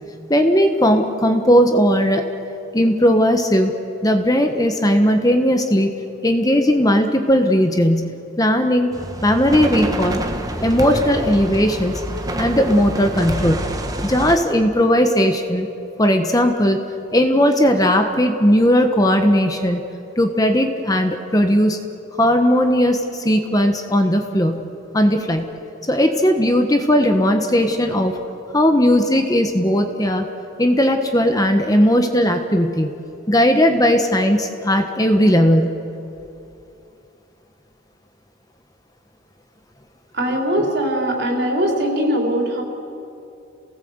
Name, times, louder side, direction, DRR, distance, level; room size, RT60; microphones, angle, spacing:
voice 1, 0.3-2.2 2.7-3.7 4.0-5.9 6.2-8.9 9.2-10.2 10.6-12.0 12.4-13.6 14.0-15.7 16.0-16.8 17.1-19.8 20.2-21.8 22.2-24.6 24.9-25.5 25.9-28.2 28.5-30.3 30.6-32.9 33.3-35.7, equal, 20° left, 5 dB, 1.3 m, -17 dB
sound 1, 8.9-14.4, right 1 dB, 20° right, 1.4 m, -27 dB
voice 2, 40.1-42.6, equal, 55° right, 1 dB, 4.0 m, -21 dB
28.5 x 18.5 x 8.0 m, 2.7 s
head